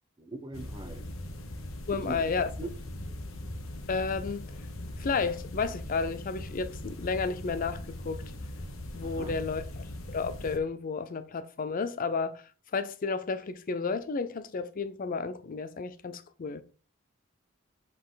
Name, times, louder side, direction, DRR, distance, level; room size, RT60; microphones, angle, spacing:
voice 1, 0.2-1.0 1.9-2.2 2.6-2.7 9.0-9.4, right 2 dB, 20° right, 0.9 m, -40 dB
sound 1, 0.5-10.6, left 1 dB, 80° left, 1.1 m, -40 dB
voice 2, 1.9-2.5 3.9-4.4 5.0-8.2 8.9-12.4 12.7-16.6, left 4 dB, 45° left, 0.4 m, -32 dB
7.4 x 4.1 x 3.9 m
head